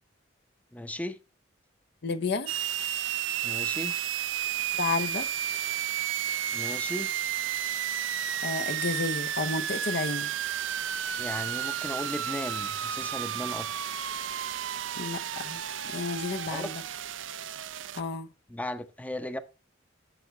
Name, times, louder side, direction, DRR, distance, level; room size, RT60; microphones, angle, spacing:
voice 1, 0.7-1.2 3.4-4.0 6.5-7.1 11.2-13.7 16.5-17.0 18.5-19.4, left 1 dB, 10° left, 0.7 m, -36 dB
voice 2, 2.0-2.5 4.8-5.3 8.4-10.3 15.0-16.8 17.9-18.3, left 4 dB, 65° left, 0.8 m, -31 dB
sound 1, 2.5-18.0, right 10 dB, 80° right, 0.6 m, -32 dB
11.0 x 6.9 x 3.2 m
head